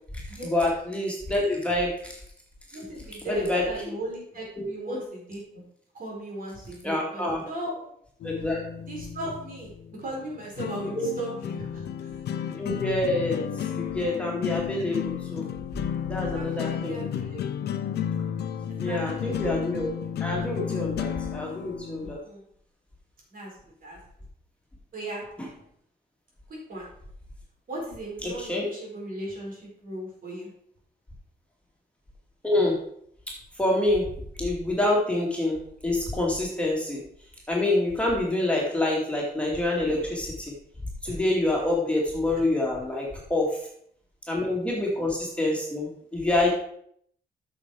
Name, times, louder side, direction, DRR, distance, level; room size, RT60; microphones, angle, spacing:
voice 1, 0.5-2.2 3.2-3.6 4.6-5.0 6.8-7.4 8.2-8.6 10.9-11.1 12.6-13.4 13.7-15.5 16.1-17.0 18.8-19.9 20.2-22.2 28.2-28.7 32.4-32.8 33.6-34.0 34.4-35.6 35.8-37.0 37.5-40.5 41.0-43.5 44.3-46.5, left 2 dB, 5° left, -3 dB, 2.4 m, -26 dB
voice 2, 2.7-5.6 5.9-7.9 8.9-9.7 10.0-12.2 16.1-17.7 18.7-19.4 22.0-22.4 23.3-24.0 24.9-25.3 26.5-26.9 27.7-30.5 39.7-40.0 41.0-41.2, right 1 dB, 55° right, -2 dB, 4.3 m, -38 dB
sound 1, 8.2-22.2, left 9 dB, 80° left, 0.6 m, -33 dB
8.5 x 6.5 x 4.8 m, 0.66 s
cardioid pair, 120°, 17 cm